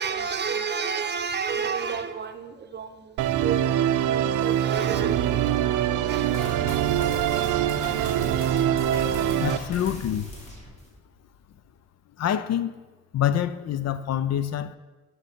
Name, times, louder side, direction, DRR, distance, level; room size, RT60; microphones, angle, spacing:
voice 1, 0.0-3.6 3.9-6.3, right 6 dB, 35° right, 0.8 m, -31 dB
Musical instrument, 3.2-9.6, right 11 dB, 80° right, 0.5 m, -24 dB
sound 1, 6.1-10.9, equal, 20° left, 2.6 m, -40 dB
sound 2, 6.3-10.6 11.0-11.7, left 2 dB, 90° left, 2.9 m, -42 dB
voice 2, 9.4-10.3 12.2-12.8 13.1-14.8, left 10 dB, 60° left, 0.5 m, -26 dB
12.0 x 6.7 x 4.4 m
cardioid pair, 90°, 30 cm